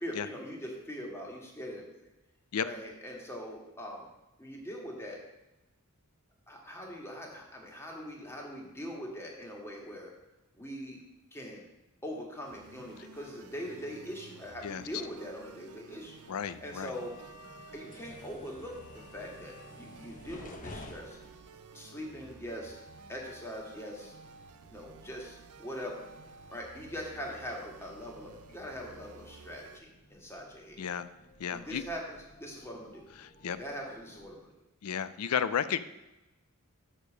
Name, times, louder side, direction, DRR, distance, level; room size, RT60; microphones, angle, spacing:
voice 1, 0.0-1.9 2.6-4.1 4.4-5.2 6.5-10.1 10.6-11.0 11.3-11.6 12.0-16.2 16.6-21.2 21.7-22.8 23.1-24.1 24.7-26.1 26.5-30.8 31.5-33.0 33.4-34.5, equal, 10° left, -1 dB, 1.6 m, -42 dB
sound 1, 12.4-29.8, right 4 dB, 90° right, 0.5 m, -53 dB
voice 2, 16.3-16.9 30.8-31.1 31.4-31.8 33.2-33.6 34.8-35.8, left 8 dB, 80° left, 13 dB, 0.5 m, -33 dB
sound 2, 16.9-34.4, left 2 dB, 35° left, 0.8 m, -55 dB
6.6 x 5.1 x 6.0 m, 0.97 s
head